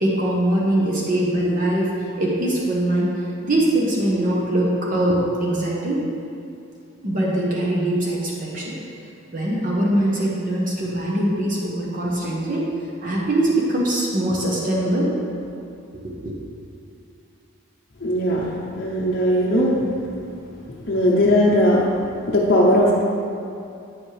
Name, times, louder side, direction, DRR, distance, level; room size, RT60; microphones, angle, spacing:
voice 1, 0.0-3.1 3.4-6.0 7.0-8.8 9.3-12.7 13.0-15.1 16.2-16.3, right 1 dB, 40° right, -4 dB, 1.0 m, -22 dB
voice 2, 18.0-19.8 20.9-23.0, equal, 45° left, -6 dB, 0.7 m, -19 dB
8.8 x 7.0 x 3.3 m, 2.6 s
head